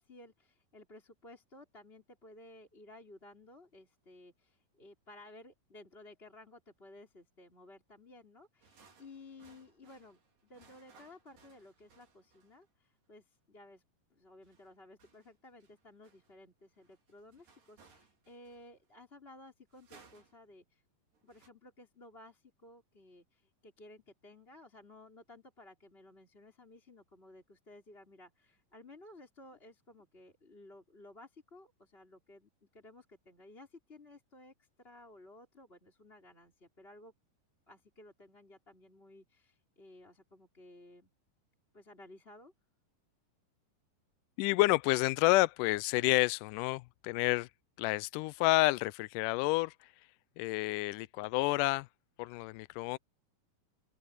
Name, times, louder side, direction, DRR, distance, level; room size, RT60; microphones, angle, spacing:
voice 1, 0.0-13.8 14.1-20.8 21.2-37.1 37.7-41.1 41.7-42.5, left 2 dB, 15° left, 3.9 m, -56 dB
sound 1, 8.6-12.7 14.4-18.9 19.7-20.5 21.1-21.5, right 4 dB, 70° right, 6.4 m, -64 dB
voice 2, 44.4-47.5 47.8-49.7 50.4-51.9 52.2-53.0, left 20 dB, 80° left, 1.9 m, -29 dB
open air
omnidirectional pair, 4.0 m